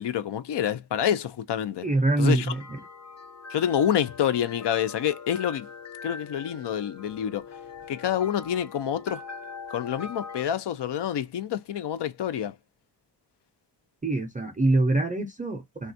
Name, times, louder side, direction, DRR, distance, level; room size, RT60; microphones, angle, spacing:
voice 1, 0.0-1.9 2.2-2.5 3.5-5.7 6.0-7.5 7.9-9.2 9.7-12.5, left 9 dB, 80° left, 0.5 m, -27 dB
voice 2, 1.8-2.8 14.0-15.9, right 2 dB, 20° right, 0.5 m, -24 dB
sound 1, 1.9-10.4, left 5 dB, 40° left, 0.7 m, -42 dB
3.3 x 2.3 x 2.5 m
wide cardioid pair, 160°, 41 cm